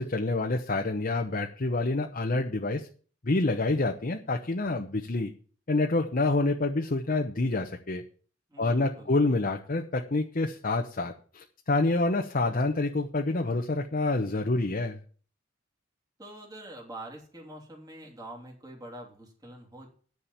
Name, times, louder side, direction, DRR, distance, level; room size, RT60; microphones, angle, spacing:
voice 1, 0.0-2.9 3.2-5.3 5.7-8.0 8.6-15.0, left 2 dB, 45° left, 3 dB, 0.9 m, -27 dB
voice 2, 8.5-9.1 16.2-19.9, right 1 dB, 20° right, -2 dB, 3.1 m, -45 dB
9.6 x 7.0 x 7.4 m, 0.43 s
head